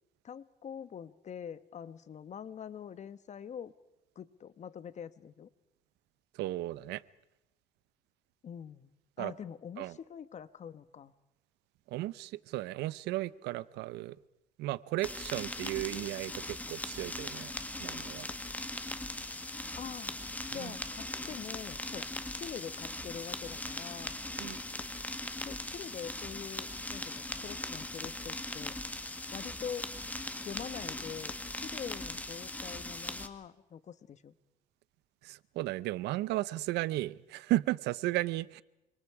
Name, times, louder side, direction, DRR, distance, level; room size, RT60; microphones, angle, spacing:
voice 1, 0.2-3.7 4.1-5.5 8.4-8.9 9.2-11.1 19.8-20.2 20.5-24.1 25.4-28.8 29.3-29.9 30.4-34.3, left 8 dB, 45° left, 1.3 m, -44 dB
voice 2, 6.3-7.0 9.2-9.3 9.8-10.0 11.9-14.2 14.6-17.5 17.8-18.3 20.6-20.7 24.4-24.6 35.2-38.6, right 17 dB, 85° right, 0.8 m, -34 dB
sound 1, 15.0-33.3, left 1 dB, 10° left, 2.0 m, -40 dB
28.5 x 26.5 x 4.9 m
cardioid pair, 110°, 17 cm